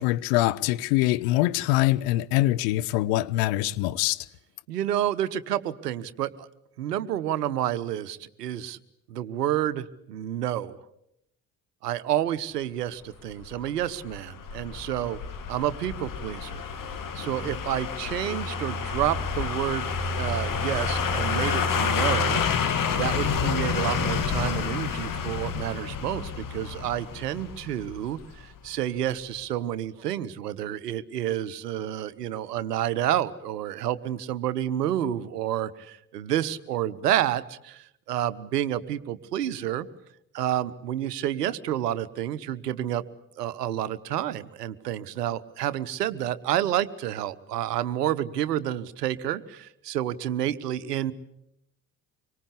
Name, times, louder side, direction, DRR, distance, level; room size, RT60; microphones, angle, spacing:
voice 1, 0.0-4.2, left 17 dB, 65° left, 1.0 m, -24 dB
voice 2, 4.7-6.5 6.8-8.8 9.1-10.8 11.8-15.2 15.5-16.6 17.1-22.4 22.9-39.9 40.3-43.0 43.4-51.1, right 11 dB, 75° right, 1.1 m, -29 dB
sound 1, 13.4-28.3 28.6-28.7, left 5 dB, 40° left, 2.6 m, -29 dB
25.5 x 24.0 x 8.4 m
figure-of-eight pair, 50°, 47 cm